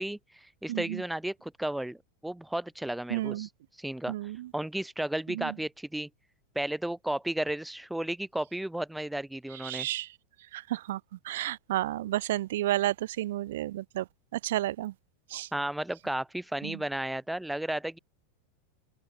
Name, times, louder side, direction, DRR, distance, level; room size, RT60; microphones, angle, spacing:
voice 1, 0.0-3.5 3.8-4.1 4.5-6.1 6.6-9.9 15.5-18.0, right 1 dB, 5° right, 2.1 m, -33 dB
voice 2, 0.7-1.0 3.1-3.5 4.1-4.5 5.3-5.5 9.6-10.1 10.5-14.1 14.3-14.9 15.3-15.5 16.6-16.8, right 15 dB, 60° right, 2.2 m, -31 dB
open air
figure-of-eight pair, 90°, 0 cm